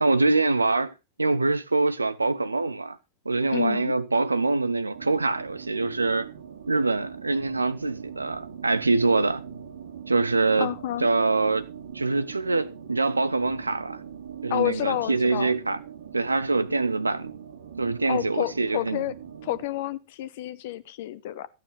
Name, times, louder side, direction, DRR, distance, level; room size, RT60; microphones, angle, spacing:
voice 1, 0.0-3.0 3.2-6.3 6.7-9.4 10.1-10.7 11.0-11.7 11.9-14.0 14.4-15.8 16.1-17.3 17.8-19.0, right 3 dB, 80° right, 0.7 m, -24 dB
voice 2, 3.5-3.9 10.6-11.1 14.5-15.5 18.1-21.5, left 14 dB, 55° left, 0.9 m, -30 dB
sound 1, 4.9-19.7, right 8 dB, 65° right, 1.6 m, -42 dB
15.0 x 9.2 x 4.0 m
figure-of-eight pair, 90°, 0 cm